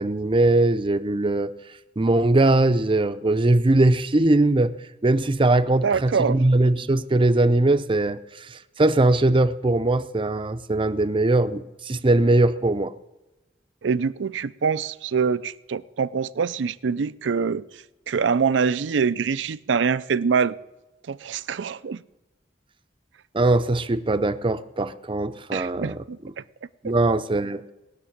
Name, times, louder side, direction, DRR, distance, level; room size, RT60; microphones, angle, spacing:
voice 1, 0.0-1.5 2.0-4.8 5.0-8.2 8.5-12.9 23.3-26.3 26.8-27.6, right 2 dB, 30° right, 0.6 m, -21 dB
voice 2, 5.8-6.4 13.8-17.6 18.1-20.6 21.1-22.0 25.5-26.2, right 6 dB, 80° right, 0.5 m, -24 dB
19.5 x 6.8 x 8.6 m
head